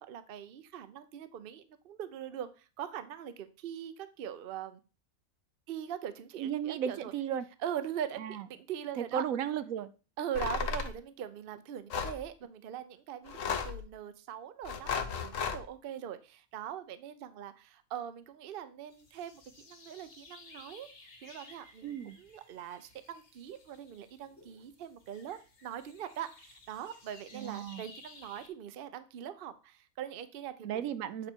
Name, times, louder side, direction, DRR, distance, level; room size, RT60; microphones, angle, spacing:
voice 1, 0.0-4.8 5.7-7.1 7.6-9.2 10.2-30.9, right 9 dB, 55° right, 11 dB, 0.7 m, -42 dB
voice 2, 6.4-7.5 8.2-8.4 9.0-9.9 21.8-22.2 27.3-27.9 30.6-31.3, right 9 dB, 80° right, 13 dB, 1.0 m, -35 dB
sound 1, 10.4-10.9 11.9-12.2 13.3-13.8 14.6-15.6, left 6 dB, 70° left, 1.2 m, -34 dB
sound 2, 18.9-28.5, left 3 dB, 55° left, 1.8 m, -56 dB
8.8 x 4.5 x 4.4 m, 0.34 s
omnidirectional pair, 1.4 m